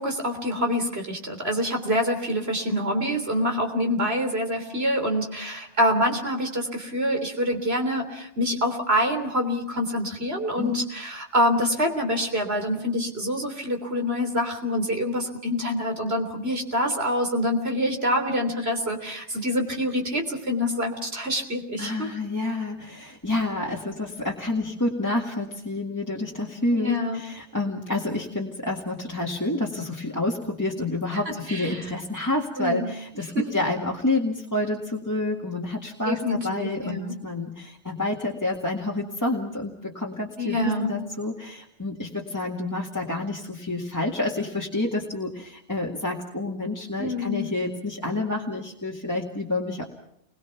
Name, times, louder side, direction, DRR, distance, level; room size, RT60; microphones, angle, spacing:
voice 1, 0.0-22.1 26.7-27.2 31.5-31.8 32.6-32.9 33.3-33.4 36.0-37.2 40.4-40.9 47.0-47.5, equal, 65° right, 4 dB, 3.7 m, -26 dB
voice 2, 21.8-49.8, left 2 dB, 15° left, -1 dB, 2.1 m, -28 dB
30.0 x 22.0 x 5.9 m, 0.77 s
omnidirectional pair, 1.2 m